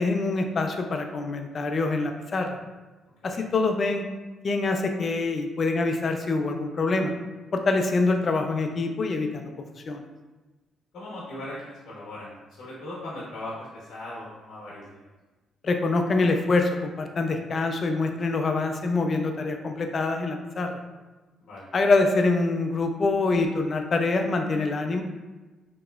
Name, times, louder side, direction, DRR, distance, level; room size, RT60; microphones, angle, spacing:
voice 1, 0.0-2.6 3.2-4.0 4.4-7.1 7.5-10.0 15.6-20.8 21.7-25.0, left 3 dB, 45° left, 5 dB, 0.4 m, -25 dB
voice 2, 10.9-15.1 21.4-21.6, left 1 dB, 75° left, -7 dB, 0.8 m, -39 dB
2.9 x 2.9 x 2.3 m, 1.2 s
cardioid pair, 90°, 0 cm